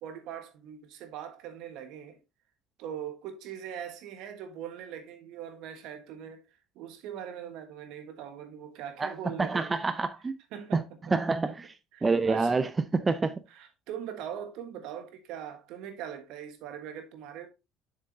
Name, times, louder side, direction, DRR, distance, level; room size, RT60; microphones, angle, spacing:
voice 1, 0.0-2.2 2.8-6.5 6.7-9.9 10.5-10.8 11.9-12.5 13.5-17.5, right 9 dB, 70° right, 1.4 m, -41 dB
voice 2, 9.4-10.4 10.7-11.7 12.0-13.4, right 4 dB, 25° right, 0.6 m, -27 dB
7.3 x 6.5 x 2.8 m
supercardioid pair, 75°, 0 cm